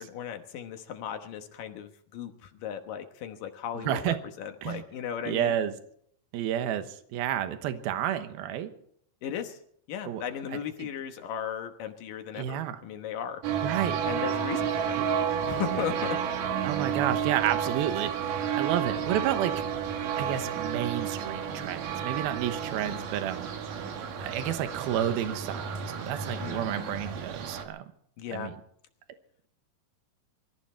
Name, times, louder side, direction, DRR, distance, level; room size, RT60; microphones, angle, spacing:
voice 1, 0.0-5.5 9.2-9.6 9.9-13.4 14.1-15.0 15.5-16.2 22.8-23.1 26.4-27.0 28.2-28.5, left 9 dB, 70° left, 6 dB, 2.7 m, -36 dB
voice 2, 3.7-4.2 4.6-4.8 5.3-5.7 6.3-8.7 10.1-10.2 12.4-12.8 13.6-14.0 15.4-15.8 16.6-19.6 20.1-23.5 24.2-27.9 28.3-28.6, right 11 dB, 80° right, 9 dB, 3.0 m, -31 dB
sound 1, 13.4-27.7, right 8 dB, 65° right, 3.1 m, -31 dB
23.5 x 14.0 x 4.4 m, 0.65 s
omnidirectional pair, 4.4 m